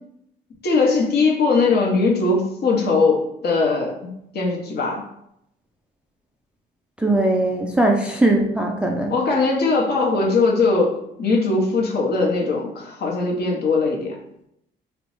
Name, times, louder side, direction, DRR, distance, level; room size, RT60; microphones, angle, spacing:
voice 1, 0.6-5.0 9.1-10.9 11.2-14.2, left 3 dB, 55° left, -2 dB, 0.8 m, -20 dB
voice 2, 7.0-9.1, right 2 dB, 5° right, 1 dB, 0.3 m, -20 dB
3.4 x 2.0 x 3.0 m, 0.78 s
cardioid pair, 90°, 20 cm